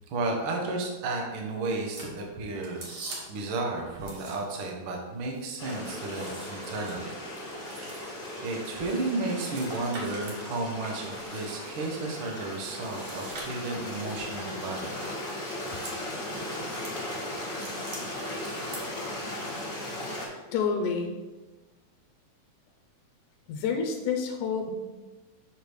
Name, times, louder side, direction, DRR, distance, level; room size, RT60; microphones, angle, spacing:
voice 1, 0.1-2.8 3.3-7.1 7.4-7.8 8.1-15.2, right 3 dB, 75° right, 1 dB, 1.1 m, -33 dB
sound 1, 1.8-3.5 4.0-4.7 5.0-10.4 10.8-11.9 12.6-14.0 14.8-15.1 15.5-16.0 16.3-17.0 17.3-18.0 18.5-18.8, right 2 dB, 50° right, 1.8 m, -44 dB
Stream, 5.6-20.3, left 1 dB, 30° left, 1.3 m, -37 dB
voice 2, 20.5-21.1 23.5-24.7, left 6 dB, 75° left, 4 dB, 2.1 m, -28 dB
7.3 x 3.4 x 6.3 m, 1.2 s
omnidirectional pair, 4.1 m